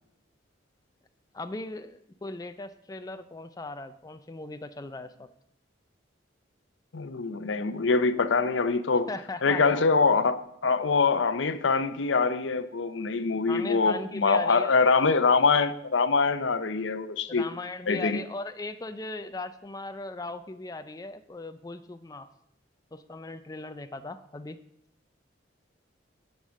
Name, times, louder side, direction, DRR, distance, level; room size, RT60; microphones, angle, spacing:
voice 1, 1.3-5.3 9.1-9.8 13.5-14.7 17.3-22.3 22.9-24.6, left 2 dB, 20° left, 0.4 m, -38 dB
voice 2, 6.9-9.1 9.4-10.4 10.6-17.5 17.9-18.2, left 4 dB, 80° left, 0.7 m, -24 dB
8.3 x 7.3 x 6.4 m
head